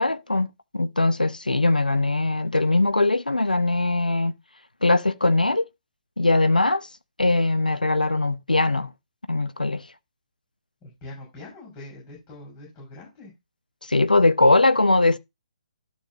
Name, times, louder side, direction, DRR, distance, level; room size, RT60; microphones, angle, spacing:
voice 1, 0.0-4.3 4.8-5.7 6.2-6.9 7.2-8.9 9.3-9.8 13.9-15.2, left 2 dB, 85° left, 0.8 m, -21 dB
voice 2, 10.8-13.3, left 2 dB, 20° left, 6.6 m, -43 dB
12.5 x 6.2 x 2.9 m
figure-of-eight pair, 135°, 4 cm